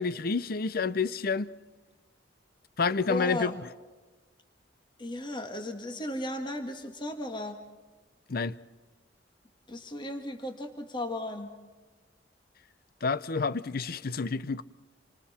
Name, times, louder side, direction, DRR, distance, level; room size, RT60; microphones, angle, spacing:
voice 1, 0.0-1.5 2.8-3.5 8.3-8.5 13.0-14.6, left 4 dB, 55° left, 0.6 m, -29 dB
voice 2, 3.1-3.5 5.0-7.6 9.7-11.5, left 1 dB, 25° left, 1.8 m, -35 dB
28.5 x 25.0 x 4.3 m
head